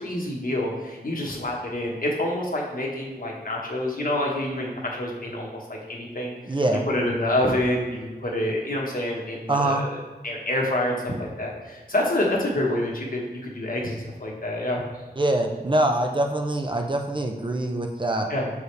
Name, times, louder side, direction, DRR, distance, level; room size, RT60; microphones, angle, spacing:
voice 1, 0.0-5.6 5.9-6.3 6.9-9.9 10.2-14.8 18.3-18.5, left 1 dB, 55° left, -2 dB, 1.3 m, -27 dB
voice 2, 6.5-6.8 9.5-9.8 15.2-18.3, right 1 dB, 30° right, 3 dB, 0.6 m, -24 dB
6.4 x 4.8 x 3.3 m, 1.3 s
wide cardioid pair, 65°, 18 cm